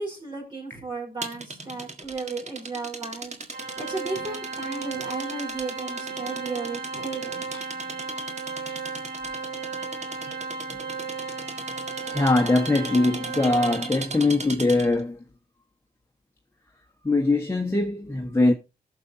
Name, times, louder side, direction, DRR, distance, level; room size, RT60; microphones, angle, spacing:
voice 1, 0.0-3.4 3.8-7.5 10.3-10.4, right 3 dB, 30° right, 4.9 m, -34 dB
sound 1, 1.2-15.0, right 3 dB, 45° right, 1.8 m, -38 dB
Organ, 3.5-14.3, right 4 dB, 75° right, 2.1 m, -35 dB
voice 2, 12.0-15.2 17.0-18.5, left 2 dB, 15° left, 1.4 m, -22 dB
19.0 x 6.9 x 2.8 m
cardioid pair, 80°, 16 cm